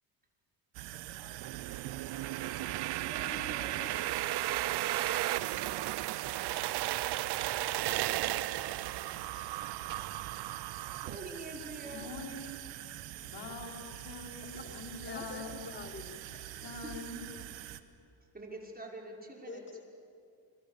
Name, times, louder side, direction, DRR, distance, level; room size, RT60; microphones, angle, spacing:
sound 1, 0.7-17.8, right 14 dB, 80° right, 1.3 m, -45 dB
sound 2, 1.4-11.2, right 16 dB, 60° right, 0.7 m, -34 dB
voice 1, 3.0-3.9 10.5-12.1 16.5-17.4 18.3-19.9, right 2 dB, 20° right, 0 dB, 5.4 m, -46 dB
voice 2, 11.9-12.5 13.2-15.6 16.6-17.2, left 4 dB, 65° left, 1 dB, 5.0 m, -44 dB
voice 3, 15.0-16.9 19.5-19.8, left 4 dB, 25° left, 6 dB, 2.7 m, -47 dB
29.5 x 22.0 x 7.3 m, 2.5 s
cardioid pair, 85°, 44 cm